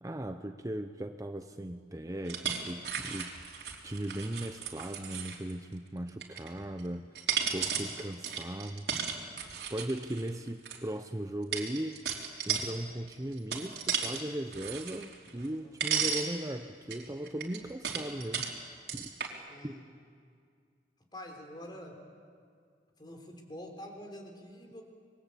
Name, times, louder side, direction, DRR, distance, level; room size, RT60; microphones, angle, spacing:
voice 1, 0.0-3.3 3.8-7.1 7.5-8.9 9.7-12.0 12.5-18.5 18.9-19.1 19.6-19.8, right 1 dB, 20° right, 7 dB, 0.7 m, -38 dB
sound 1, 2.3-5.5 6.1-6.8 7.2-10.8 11.5-12.7 13.1-14.2 14.5-15.6 15.8-16.3 16.9-18.5 18.9-19.3, right 7 dB, 65° right, 3.4 m, -34 dB
voice 2, 15.3-15.7 19.5-19.9 21.1-22.0 23.0-24.8, equal, 25° left, 3 dB, 3.7 m, -46 dB
26.5 x 22.5 x 8.5 m, 2.1 s
head